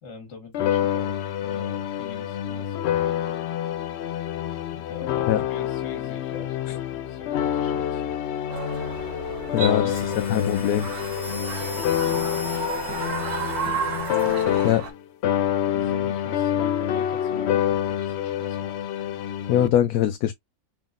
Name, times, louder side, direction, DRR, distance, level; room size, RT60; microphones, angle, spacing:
voice 1, 0.0-3.4 4.7-8.2 9.6-10.4 11.3-13.6 15.3-18.8, left 3 dB, 50° left, 1.6 m, -43 dB
sound 1, 0.5-15.0 15.2-19.7, left 10 dB, 70° left, 0.6 m, -27 dB
sound 2, 8.5-14.9, right 6 dB, 90° right, 1.4 m, -33 dB
voice 2, 9.5-9.9 10.3-10.9 14.6-14.8 19.5-20.3, left 11 dB, 90° left, 1.1 m, -22 dB
sound 3, 9.9-14.5, equal, ahead, 1.0 m, -40 dB
3.8 x 3.5 x 2.4 m
omnidirectional pair, 1.6 m